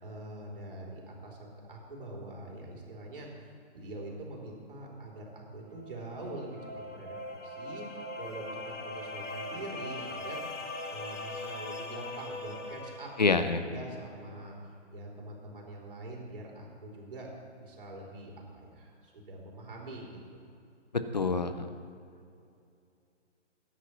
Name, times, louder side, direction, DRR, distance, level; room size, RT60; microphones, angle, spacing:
voice 1, 0.0-6.6 6.9-7.8 8.2-10.4 10.9-13.1 13.7-14.6 14.9-17.3 17.6-20.4, right 2 dB, 50° right, -1 dB, 3.6 m, -44 dB
sound 1, 5.7-13.4, left 2 dB, 85° left, 2.0 m, -41 dB
voice 2, 13.2-13.6 21.1-21.7, left 4 dB, 35° left, 10 dB, 0.7 m, -26 dB
20.5 x 10.0 x 3.1 m, 2.5 s
hypercardioid pair, 180°, 36 cm